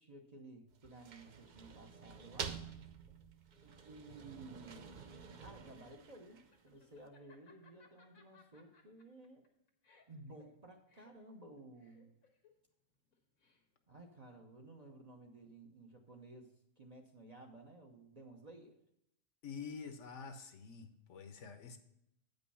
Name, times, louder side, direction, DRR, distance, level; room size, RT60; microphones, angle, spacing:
voice 1, 0.0-2.6 3.6-4.9 5.4-9.5 10.1-12.1 13.9-18.8, right 2 dB, 35° right, 2 dB, 0.9 m, -55 dB
sound 1, 0.7-6.7, right 6 dB, 55° right, 0.5 m, -49 dB
Laughter, 4.9-13.9, left 5 dB, 90° left, 1.8 m, -68 dB
voice 2, 19.4-21.8, left 5 dB, 65° left, 8 dB, 1.1 m, -47 dB
9.1 x 5.3 x 5.6 m, 0.79 s
omnidirectional pair, 1.4 m